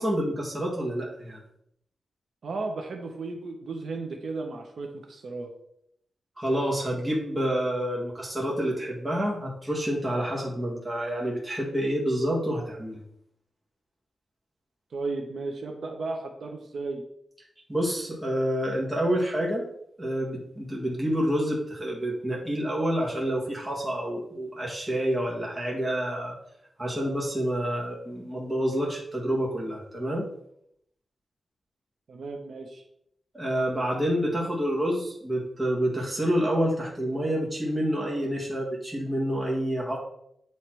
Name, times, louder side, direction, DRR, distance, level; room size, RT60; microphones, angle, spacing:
voice 1, 0.0-1.4 6.4-13.0 17.7-19.6 20.0-26.3 26.8-30.2 33.3-40.0, equal, 15° right, -4 dB, 1.7 m, -28 dB
voice 2, 2.4-5.5 14.9-17.0 32.1-32.8, right 3 dB, 65° right, 3 dB, 0.8 m, -34 dB
8.4 x 3.2 x 4.4 m, 0.74 s
wide cardioid pair, 135°, 0 cm